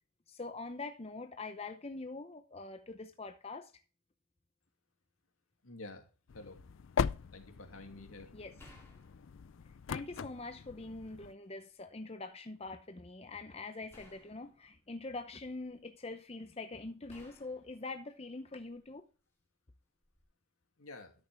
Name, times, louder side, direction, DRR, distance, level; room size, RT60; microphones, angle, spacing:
voice 1, 0.3-3.8 8.3-8.6 9.9-19.1, left 3 dB, 30° left, 0.7 m, -44 dB
voice 2, 5.6-6.1 6.3-6.6 7.3-8.3 20.8-21.1, left 2 dB, 80° left, 2.5 m, -49 dB
sound 1, 6.3-11.3, left 6 dB, 65° left, 0.4 m, -40 dB
sound 2, 8.6-10.4 10.9-11.8 13.9-15.8 17.1-18.9 20.0-20.2, left 1 dB, 10° left, 3.0 m, -62 dB
13.0 x 6.8 x 3.4 m
head